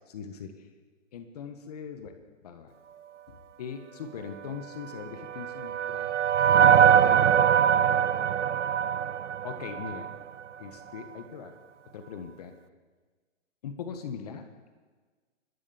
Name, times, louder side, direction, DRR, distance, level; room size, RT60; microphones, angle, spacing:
voice 1, 0.1-0.5 1.1-2.2 2.4-2.7 3.6-6.1 6.6-7.2 9.4-10.1 10.6-11.5 11.9-12.5 13.6-14.5, left 7 dB, 30° left, 7 dB, 1.5 m, -40 dB
sound 1, 4.9-10.2, right 8 dB, 75° right, 0.9 m, -23 dB
29.5 x 12.5 x 7.2 m, 1.4 s
hypercardioid pair, 165°, 37 cm